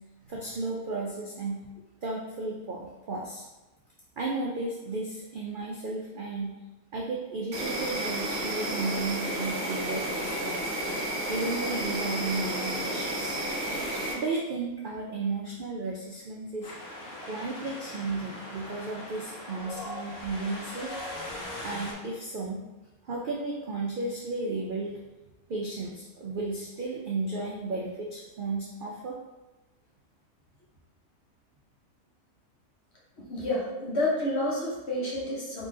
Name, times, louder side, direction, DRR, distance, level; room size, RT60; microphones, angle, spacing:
voice 1, 0.3-1.6 2.0-3.4 4.2-6.5 6.9-10.7 11.3-13.3 14.1-16.7 17.2-20.9 21.6-22.6 23.0-25.0 25.5-29.2, right 3 dB, 70° right, -2 dB, 0.5 m, -34 dB
Insect, 7.5-14.1, right 1 dB, 40° right, 1.2 m, -31 dB
Wind, 16.6-21.9, left 1 dB, 70° left, 1.4 m, -40 dB
voice 2, 33.3-35.7, left 1 dB, 50° left, -5 dB, 1.3 m, -29 dB
3.8 x 3.0 x 3.7 m, 1.1 s
omnidirectional pair, 1.5 m